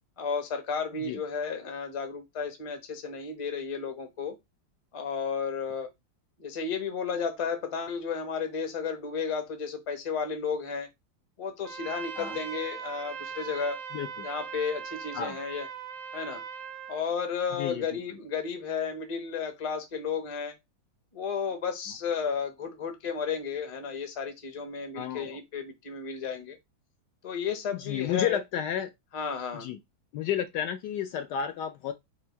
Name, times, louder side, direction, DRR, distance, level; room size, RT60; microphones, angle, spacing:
voice 1, 0.2-4.4 4.9-5.9 6.4-10.9 11.4-13.8 14.2-15.7 16.1-16.4 16.9-20.5 21.1-26.6 27.2-28.4 29.1-29.7, left 6 dB, 30° left, 0.6 m, -33 dB
Trumpet, 11.6-17.0, right 7 dB, 80° right, 0.7 m, -40 dB
voice 2, 13.9-14.3 15.1-15.4 17.5-18.0 24.9-25.4 27.7-28.9 29.5-29.8 30.1-31.9, left 9 dB, 70° left, 1.1 m, -32 dB
4.5 x 2.6 x 4.5 m
omnidirectional pair, 2.1 m